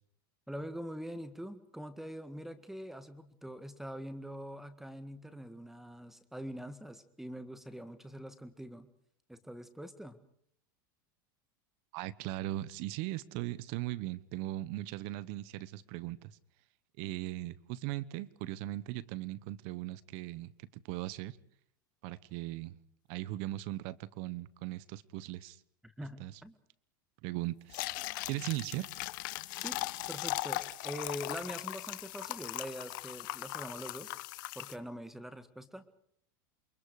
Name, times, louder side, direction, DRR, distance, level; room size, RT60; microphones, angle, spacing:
voice 1, 0.5-8.9 9.3-10.2 25.8-26.6 28.3-28.4 29.6-29.8 30.1-34.1 34.6-35.8, equal, 5° right, 11 dB, 1.8 m, -44 dB
voice 2, 11.9-16.4 17.0-21.4 22.0-22.7 23.1-25.6 26.2-26.3 27.2-27.8 28.3-28.9, right 16 dB, 55° right, 18 dB, 1.1 m, -38 dB
sound 1, 27.7-34.8, left 19 dB, 65° left, 1.1 m, -39 dB
28.5 x 23.0 x 4.9 m, 0.65 s
supercardioid pair, 125°, 11 cm